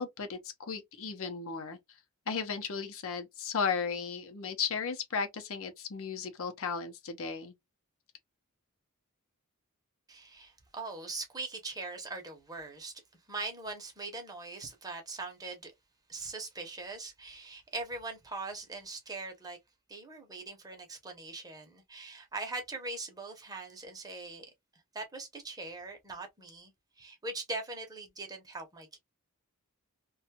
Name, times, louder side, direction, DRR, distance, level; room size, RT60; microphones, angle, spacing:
voice 1, 0.0-1.8 2.3-7.5, left 5 dB, 65° left, 0.7 m, -35 dB
voice 2, 10.1-12.9 13.3-15.7 16.1-19.6 19.9-24.5 24.9-26.7 27.0-29.0, right 3 dB, 15° right, 0.8 m, -41 dB
2.6 x 2.3 x 2.8 m
head